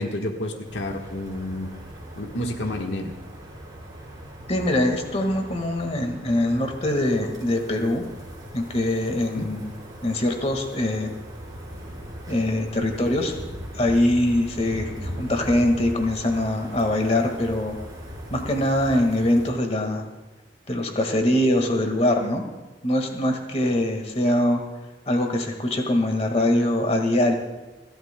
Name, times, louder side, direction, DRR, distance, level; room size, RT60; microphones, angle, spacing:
voice 1, 0.0-1.7 2.1-3.1 9.1-9.5, left 1 dB, 80° left, 2 dB, 1.4 m, -30 dB
sound 1, 0.6-19.5, equal, 25° right, 5.1 m, -39 dB
voice 2, 4.5-8.0 8.5-9.7 10.0-11.2 12.3-13.4 13.7-17.8 18.3-20.1 20.7-22.4 22.8-24.6 25.1-27.3, left 1 dB, 35° left, 4 dB, 1.8 m, -23 dB
29.5 x 12.5 x 2.2 m, 1.2 s
head